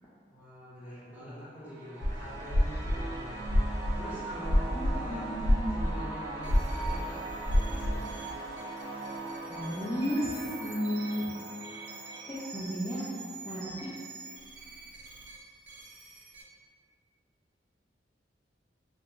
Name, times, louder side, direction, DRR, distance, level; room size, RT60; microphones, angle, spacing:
voice 1, 0.3-8.2, equal, 10° right, -10 dB, 0.7 m, -45 dB
sound 1, 1.5-12.6, right 2 dB, 65° right, 1.0 m, -40 dB
sound 2, 2.0-2.2 2.5-5.0 5.2-6.0 6.4-8.0, left 1 dB, 90° left, 0.5 m, -26 dB
voice 2, 4.7-5.7 9.5-11.3 12.3-13.1 13.4-13.6, equal, 15° left, -10 dB, 0.3 m, -33 dB
sound 3, 6.4-16.4, right 3 dB, 85° right, 0.4 m, -47 dB
2.8 x 2.1 x 2.4 m, 2.2 s
head